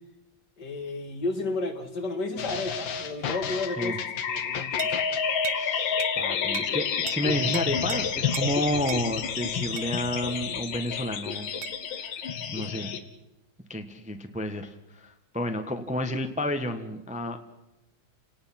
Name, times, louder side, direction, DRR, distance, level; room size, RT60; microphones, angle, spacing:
voice 1, 0.6-4.9, left 2 dB, 60° left, 6 dB, 2.6 m, -32 dB
sound 1, 2.4-13.0, left 7 dB, 85° left, 2.1 m, -29 dB
sound 2, 4.8-5.0 5.4-5.7 6.0-6.2 6.5-6.8 7.1-7.2 7.5-8.0 8.3-8.5 8.9-9.1 9.8-9.9 11.6-11.8, right 9 dB, 60° right, 1.5 m, -36 dB
voice 2, 5.5-11.5 12.5-12.9 13.7-17.4, left 1 dB, 5° right, 7 dB, 1.0 m, -31 dB
30.0 x 18.5 x 5.9 m, 0.95 s
omnidirectional pair, 2.0 m